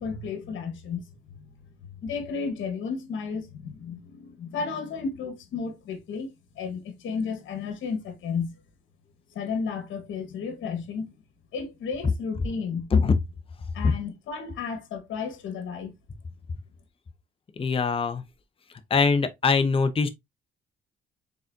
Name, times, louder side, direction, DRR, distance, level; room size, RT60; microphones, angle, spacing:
voice 1, 0.0-1.5 2.0-8.5 9.3-11.1 11.5-12.9 13.7-15.9, left 5 dB, 75° left, 1.3 m, -33 dB
voice 2, 17.6-18.2 18.9-20.1, left 4 dB, 30° left, 0.6 m, -22 dB
4.0 x 3.7 x 2.5 m
cardioid pair, 90°, 20 cm